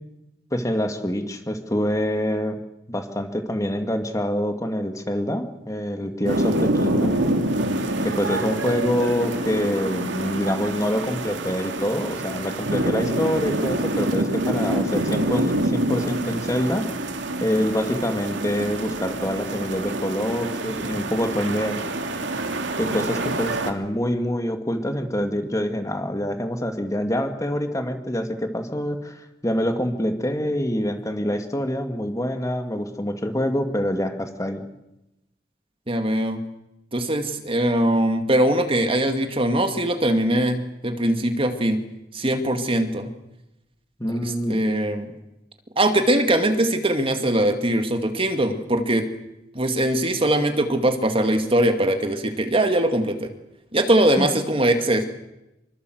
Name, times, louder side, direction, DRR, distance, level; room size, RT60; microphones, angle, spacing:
voice 1, 0.5-2.6 2.9-7.2 8.0-16.9 17.4-21.8 22.8-34.6 44.0-44.6 54.2-54.3, equal, 20° left, 6 dB, 2.3 m, -26 dB
sound 1, 6.3-23.7, right 1 dB, 80° right, 2.7 m, -26 dB
voice 2, 35.9-36.4 36.9-41.8 42.1-43.1 44.2-45.1 45.8-49.1 49.5-53.3 53.7-55.1, right 1 dB, 30° right, 7 dB, 2.2 m, -21 dB
26.5 x 24.0 x 7.9 m, 0.92 s
head